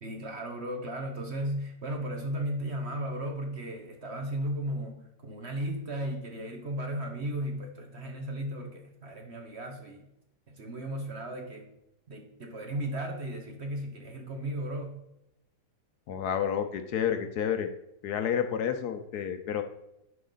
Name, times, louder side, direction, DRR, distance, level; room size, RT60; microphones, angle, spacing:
voice 1, 0.0-10.1 10.5-11.7 12.1-15.0, right 1 dB, 45° right, 3 dB, 1.1 m, -35 dB
voice 2, 16.1-17.7 18.0-19.6, left 8 dB, 70° left, 8 dB, 1.2 m, -30 dB
10.0 x 4.9 x 3.9 m, 0.83 s
omnidirectional pair, 1.8 m